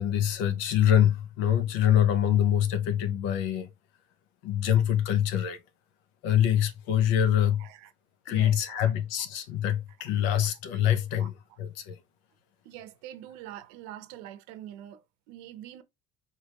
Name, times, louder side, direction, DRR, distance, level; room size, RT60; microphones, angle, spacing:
voice 1, 0.0-3.7 4.4-5.6 6.2-7.7 8.3-11.3 11.6-12.0, left 10 dB, 75° left, 1.0 m, -25 dB
voice 2, 7.6-7.9 8.3-8.9 10.7-10.8 11.1-11.3 12.6-15.8, right 12 dB, 85° right, 0.8 m, -45 dB
5.0 x 2.8 x 3.0 m
cardioid pair, 165°, 20 cm